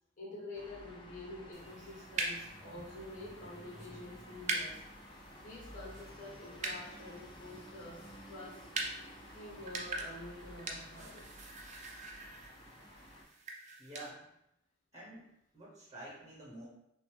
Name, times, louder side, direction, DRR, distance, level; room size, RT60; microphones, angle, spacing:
voice 1, 0.2-4.8 5.4-8.6 9.3-11.3, left 1 dB, 40° left, -4 dB, 1.3 m, -48 dB
sound 1, 0.5-13.2, equal, 25° left, 0.6 m, -53 dB
sound 2, 1.5-14.1, right 3 dB, 35° right, 0.5 m, -44 dB
voice 2, 13.8-14.3 14.9-16.7, right 1 dB, 15° right, -5 dB, 1.0 m, -49 dB
5.9 x 2.1 x 3.4 m, 0.82 s
head